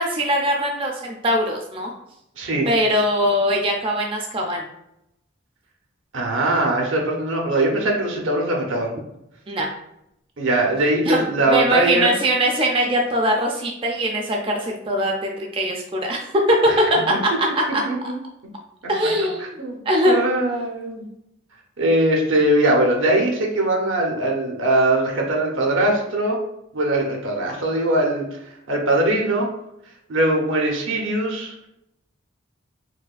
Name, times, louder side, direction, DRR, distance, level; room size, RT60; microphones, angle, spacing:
voice 1, 0.0-1.9 2.7-4.7 9.5-9.7 11.1-17.5 17.7-17.8 18.9-19.4 19.9-20.2, equal, 25° right, 0 dB, 0.4 m, -21 dB
voice 2, 2.4-2.7 6.1-8.9 10.4-12.1 16.7-16.8 17.1-17.2 17.8-18.2 19.6-19.8 20.1-21.0 21.8-26.4 26.7-28.3 28.7-29.5 30.1-31.7, right 1 dB, 85° right, 0 dB, 0.8 m, -21 dB
4.7 x 2.2 x 2.4 m, 0.80 s
head